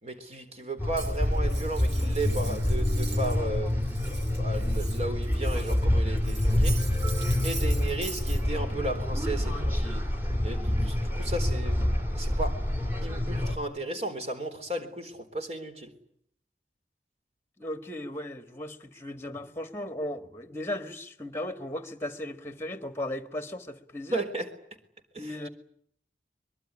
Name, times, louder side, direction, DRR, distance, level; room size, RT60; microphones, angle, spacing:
voice 1, 0.0-3.7 4.4-6.8 7.4-10.0 10.4-11.8 12.1-12.6 13.0-15.9 24.1-24.5 25.1-25.4, right 1 dB, 35° right, 4.0 m, -34 dB
sound 1, 0.8-13.6, left 1 dB, 10° right, 3.3 m, -27 dB
Cutlery silverware, 0.9-3.4 3.7-5.8 6.2-8.4, right 4 dB, 75° right, 4.9 m, -43 dB
voice 2, 17.6-24.2 25.2-25.5, left 1 dB, 15° left, 1.8 m, -36 dB
23.5 x 22.5 x 9.9 m
head